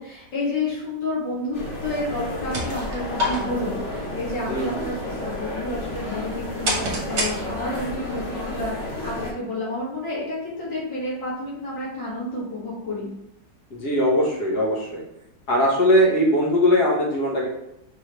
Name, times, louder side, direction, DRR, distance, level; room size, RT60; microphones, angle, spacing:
voice 1, 0.0-13.1, left 2 dB, 80° left, -7 dB, 2.5 m, -30 dB
sound 1, 1.5-9.3, left 1 dB, 40° left, 1.6 m, -32 dB
sound 2, 2.3-7.9, equal, 45° right, 1.2 m, -31 dB
voice 2, 4.5-4.9 13.8-15.0 15.5-17.5, equal, 65° left, -3 dB, 1.7 m, -20 dB
4.6 x 3.2 x 3.1 m, 0.84 s
omnidirectional pair, 1.9 m